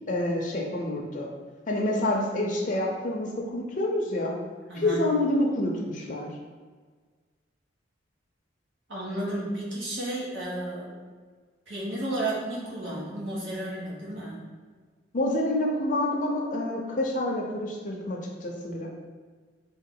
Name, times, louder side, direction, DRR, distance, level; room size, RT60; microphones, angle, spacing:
voice 1, 0.1-1.3 1.7-4.3 4.7-6.3 15.1-18.9, left 1 dB, 45° left, -2 dB, 0.5 m, -27 dB
voice 2, 4.7-5.0 8.9-11.0 11.7-14.4, right 1 dB, 85° right, -7 dB, 1.4 m, -32 dB
3.7 x 2.4 x 3.8 m, 1.5 s
head